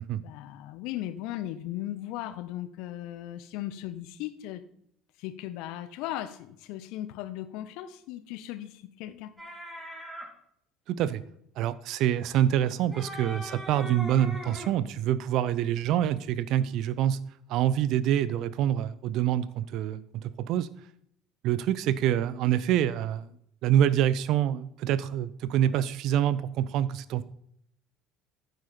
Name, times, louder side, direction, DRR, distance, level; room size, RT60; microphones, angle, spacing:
voice 1, 0.1-4.6 5.2-9.3, left 13 dB, 60° left, 12 dB, 0.9 m, -37 dB
sound 1, 9.4-10.3 12.6-14.7, equal, 10° right, 3.6 m, -40 dB
voice 2, 10.9-11.2 11.6-17.2 17.5-20.7 21.4-23.3 23.6-27.2, right 11 dB, 55° right, 17 dB, 0.7 m, -26 dB
14.5 x 8.0 x 4.3 m, 0.71 s
figure-of-eight pair, 65°, 0 cm